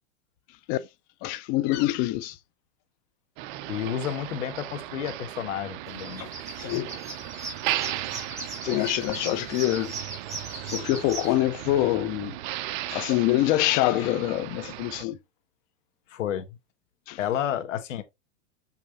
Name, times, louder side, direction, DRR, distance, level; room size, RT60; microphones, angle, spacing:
voice 1, 1.2-2.4 6.2-6.3 6.6-6.9 8.6-9.9 10.6-12.4 12.9-15.2 17.1-17.2, left 15 dB, 25° left, 0.3 m, -25 dB
Motor vehicle (road), 3.4-15.0, right 15 dB, 45° right, 0.6 m, -36 dB
voice 2, 3.7-6.3 16.1-16.5 17.2-18.0, left 10 dB, 80° left, 1.3 m, -31 dB
sound 1, 5.9-11.3, right 2 dB, 10° right, 3.4 m, -38 dB
6.2 x 5.6 x 2.8 m
hypercardioid pair, 135°, 36 cm